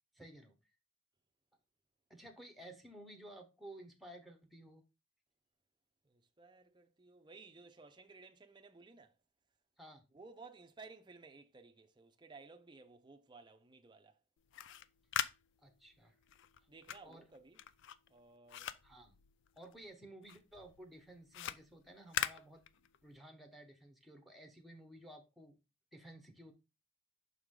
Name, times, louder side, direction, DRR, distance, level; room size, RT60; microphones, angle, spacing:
voice 1, 0.1-0.5 2.1-4.8 9.8-10.0 15.6-16.2 17.0-17.2 18.8-19.2 19.6-25.6 25.9-26.5, right 1 dB, ahead, 1.0 m, -55 dB
voice 2, 6.0-9.2 10.1-14.2 16.7-17.6 18.1-18.8, right 4 dB, 20° right, 0.6 m, -57 dB
sound 1, 14.4-19.9 20.2-23.2, left 10 dB, 60° left, 0.4 m, -43 dB
6.0 x 4.8 x 3.7 m
head